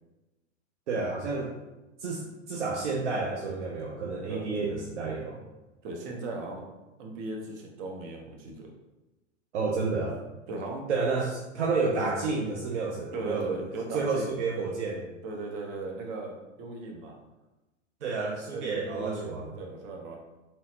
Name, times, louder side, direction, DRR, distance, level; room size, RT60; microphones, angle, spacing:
voice 1, 0.9-1.5 2.0-5.4 9.5-10.2 10.9-13.6 13.9-15.1 18.0-19.5, right 4 dB, 70° right, -1 dB, 0.8 m, -30 dB
voice 2, 5.8-6.6 7.0-8.7 10.5-10.8 13.1-14.3 15.2-17.2 18.5-20.2, right 2 dB, 50° right, 0 dB, 1.2 m, -37 dB
4.1 x 3.7 x 2.8 m, 1.0 s
hypercardioid pair, 100°, 36 cm